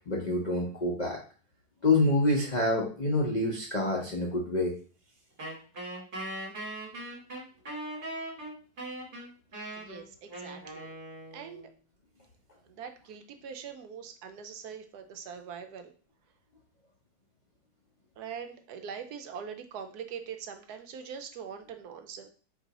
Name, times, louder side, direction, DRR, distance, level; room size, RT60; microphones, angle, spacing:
voice 1, 0.1-1.2 1.8-4.7, left 2 dB, 85° left, -1 dB, 0.4 m, -27 dB
Wind instrument woodwind instrument, 5.4-11.7, right 1 dB, 40° right, 1.8 m, -40 dB
voice 2, 9.8-10.9 11.3-11.7 12.8-15.9 18.2-22.3, right 7 dB, 70° right, 6 dB, 1.0 m, -42 dB
4.5 x 2.7 x 4.0 m, 0.40 s
omnidirectional pair, 1.9 m